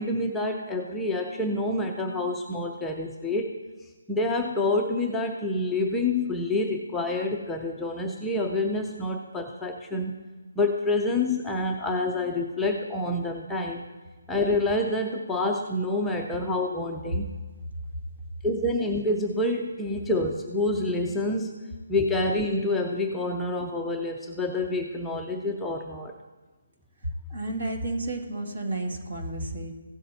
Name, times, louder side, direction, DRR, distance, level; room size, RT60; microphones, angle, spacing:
voice 1, 0.0-3.5 4.1-10.2 10.6-13.8 14.3-17.3 18.4-21.6 21.9-26.1, left 2 dB, 5° left, -1 dB, 0.5 m, -27 dB
voice 2, 27.3-29.7, right 2 dB, 55° right, 2 dB, 2.2 m, -31 dB
16.0 x 7.5 x 2.7 m, 1.3 s
hypercardioid pair, 165°, 0 cm